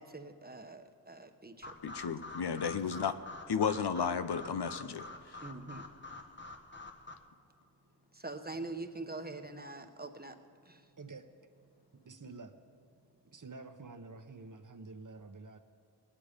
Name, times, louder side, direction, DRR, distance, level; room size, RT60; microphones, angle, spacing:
voice 1, 0.0-1.7 5.4-5.9 8.1-10.4 10.7-10.8, right 2 dB, 25° right, 5 dB, 1.0 m, -44 dB
sound 1, 1.6-7.1, left 3 dB, 25° left, 1.2 m, -47 dB
voice 2, 1.8-3.1 3.5-5.1 5.3-5.4, left 6 dB, 75° left, 11 dB, 0.7 m, -33 dB
voice 3, 12.0-12.5 13.3-15.6, right 3 dB, 50° right, 8 dB, 1.0 m, -48 dB
19.5 x 9.8 x 5.1 m, 2.4 s
cardioid pair, 40°, 40 cm